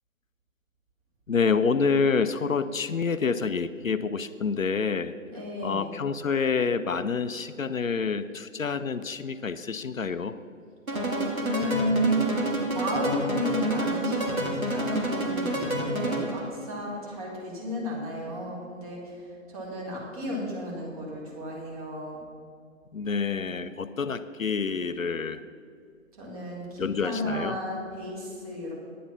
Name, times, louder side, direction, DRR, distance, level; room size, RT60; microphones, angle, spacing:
voice 1, 1.3-5.1 5.6-10.4 22.9-25.4 26.8-27.6, left 5 dB, 75° left, 11 dB, 0.7 m, -27 dB
voice 2, 5.3-5.9 10.9-12.2 12.7-22.2 26.2-28.7, equal, 25° right, -4 dB, 2.6 m, -32 dB
sound 1, 10.9-16.5, right 1 dB, 85° right, 2.4 m, -29 dB
10.0 x 8.8 x 5.7 m, 2.3 s
figure-of-eight pair, 140°, 41 cm